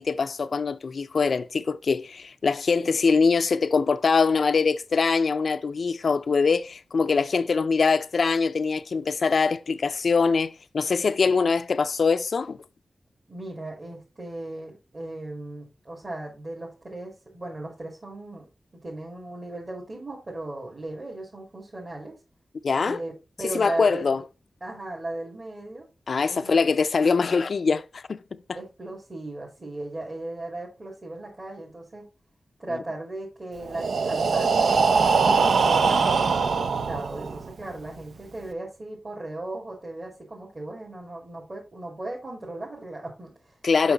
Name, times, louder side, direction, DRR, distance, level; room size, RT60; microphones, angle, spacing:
voice 1, 0.0-12.6 22.6-23.0 23.5-24.2 26.1-28.2 32.7-32.8 35.3-35.5 43.6-43.9, left 5 dB, 70° left, 0.4 m, -23 dB
voice 2, 13.3-18.4 18.8-22.2 22.8-23.1 23.4-24.2 24.6-25.9 26.3-26.6 28.5-32.0 32.6-34.7 35.3-43.5 43.8-43.9, right 2 dB, 45° right, 2.7 m, -37 dB
Breathing, 33.7-37.5, right 5 dB, 80° right, 0.5 m, -22 dB
5.8 x 5.7 x 4.0 m
cardioid pair, 55°, 0 cm